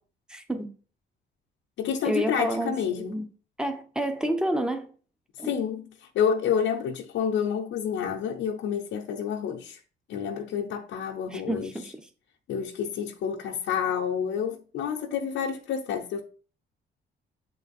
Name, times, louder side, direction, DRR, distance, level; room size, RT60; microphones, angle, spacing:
voice 1, 0.3-0.7 2.0-3.3 3.6-4.9 5.4-5.6 11.3-11.9, right 1 dB, 5° right, 0.9 m, -29 dB
voice 2, 1.8-3.2 5.4-9.8 10.1-11.7 12.5-16.2, left 7 dB, 80° left, 0.8 m, -29 dB
7.8 x 3.9 x 4.2 m
cardioid pair, 90°, 20 cm